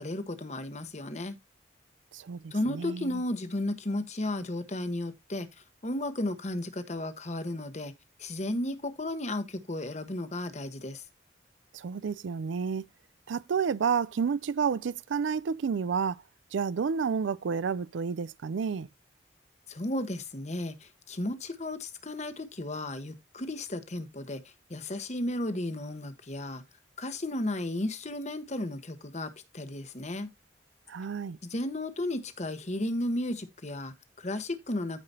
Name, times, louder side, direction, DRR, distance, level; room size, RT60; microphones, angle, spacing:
voice 1, 0.0-1.3 2.5-5.5 5.8-7.9 8.2-11.0 19.7-26.6 27.0-30.3 31.4-35.0, left 1 dB, 40° left, 1.1 m, -34 dB
voice 2, 2.1-3.2 11.7-12.8 13.3-16.2 16.5-18.9 30.9-31.4, right 6 dB, 80° right, 0.4 m, -30 dB
14.5 x 4.9 x 2.7 m
head